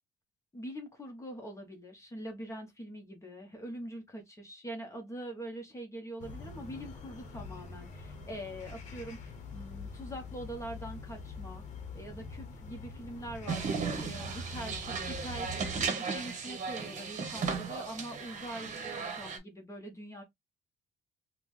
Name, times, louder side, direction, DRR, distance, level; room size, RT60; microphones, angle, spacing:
voice 1, 0.5-11.6 11.9-20.2, right 1 dB, 15° left, 0.9 m, -43 dB
sound 1, 6.2-15.8, left 2 dB, 45° left, 0.9 m, -44 dB
sound 2, 13.5-19.4, right 5 dB, 45° right, 0.9 m, -36 dB
3.7 x 2.2 x 3.0 m
cardioid pair, 110°, 17 cm